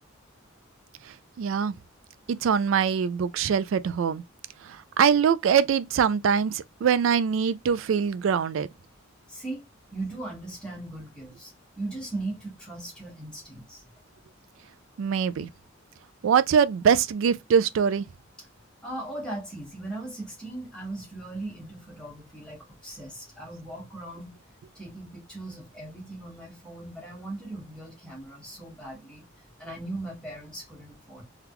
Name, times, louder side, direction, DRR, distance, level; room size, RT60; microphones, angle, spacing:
voice 1, 1.4-1.7 2.3-4.2 5.0-8.7 15.0-15.5 16.2-18.1, right 7 dB, 70° right, 0.3 m, -23 dB
voice 2, 9.3-13.8 18.4-18.5 18.8-24.3 24.7-29.2 29.6-31.2, right 2 dB, 5° left, 1.4 m, -38 dB
3.6 x 2.4 x 2.9 m
head